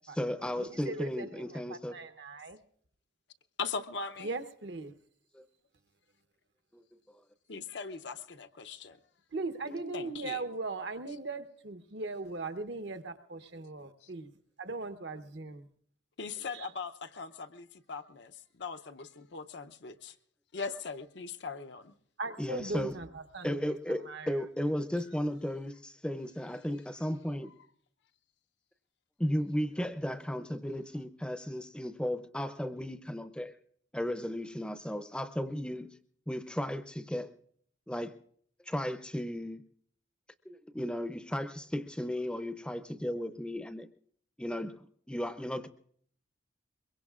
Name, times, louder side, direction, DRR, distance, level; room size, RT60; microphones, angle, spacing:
voice 1, 0.0-2.0 5.3-5.4 6.7-6.8 22.4-23.0 23.4-27.5 29.2-33.5 33.9-36.0 36.3-37.3 37.9-38.2 38.6-39.6 40.4-43.9 44.4-45.7, equal, 5° left, 10 dB, 0.5 m, -35 dB
voice 2, 0.6-2.6 4.2-4.9 9.3-14.2 14.6-15.7 22.2-23.5 24.1-24.3, right 3 dB, 65° right, 9 dB, 0.9 m, -39 dB
voice 3, 3.6-4.3 7.5-9.0 9.9-10.4 16.2-20.2 20.5-21.9, left 5 dB, 65° left, 8 dB, 0.6 m, -40 dB
23.0 x 22.5 x 2.4 m, 0.62 s
head